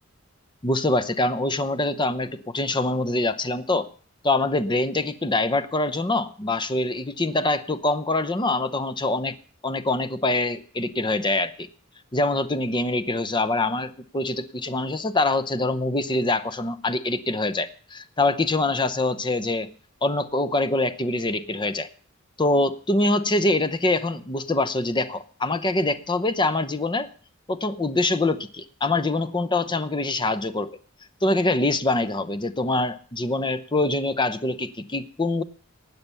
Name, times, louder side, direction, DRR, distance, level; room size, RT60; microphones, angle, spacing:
voice 1, 0.6-3.9 4.2-9.4 9.6-11.7 12.1-19.7 20.0-21.9 22.4-27.1 27.5-30.7 31.2-35.4, left 2 dB, 25° left, 13 dB, 0.8 m, -24 dB
16.0 x 9.7 x 6.9 m, 0.42 s
head